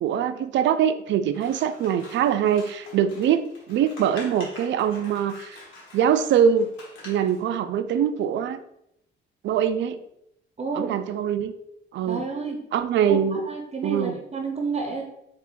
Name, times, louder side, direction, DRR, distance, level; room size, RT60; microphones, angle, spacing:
voice 1, 0.0-5.6 5.9-6.7 7.0-8.6 9.4-10.0 10.8-11.5 11.9-12.2 12.7-13.4 13.8-14.2, right 8 dB, 65° right, 11 dB, 0.4 m, -23 dB
Scissors, 1.3-7.4, left 2 dB, 90° left, 1.3 m, -45 dB
voice 2, 10.6-10.9 12.1-12.6 13.1-15.0, right 4 dB, 35° right, 3 dB, 0.7 m, -30 dB
4.3 x 2.4 x 3.7 m, 0.78 s
cardioid pair, 90°, 20 cm